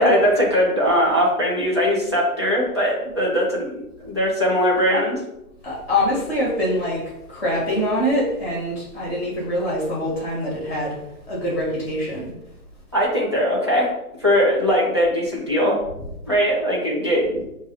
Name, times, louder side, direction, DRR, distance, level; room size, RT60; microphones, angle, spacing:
voice 1, 0.0-5.2 12.9-13.9 14.2-15.8 16.3-17.4, equal, 20° right, -6 dB, 0.5 m, -20 dB
voice 2, 5.6-7.0 7.3-11.0 11.3-12.3, left 1 dB, 5° left, -5 dB, 1.5 m, -24 dB
4.7 x 2.4 x 4.1 m, 0.87 s
hypercardioid pair, 165°, 46 cm